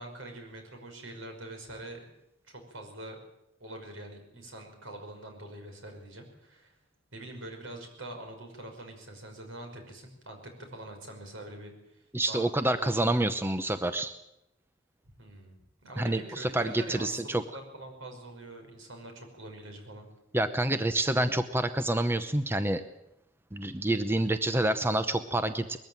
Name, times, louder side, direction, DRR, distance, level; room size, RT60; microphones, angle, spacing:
voice 1, 0.0-2.1 2.5-3.2 3.6-6.8 7.1-13.2 15.2-15.6 15.8-20.1, right 1 dB, 75° right, 4 dB, 5.6 m, -44 dB
voice 2, 12.1-14.1 16.0-17.4 20.3-22.8 23.5-25.8, right 1 dB, 10° right, 10 dB, 0.8 m, -28 dB
21.0 x 14.0 x 9.0 m, 0.85 s
head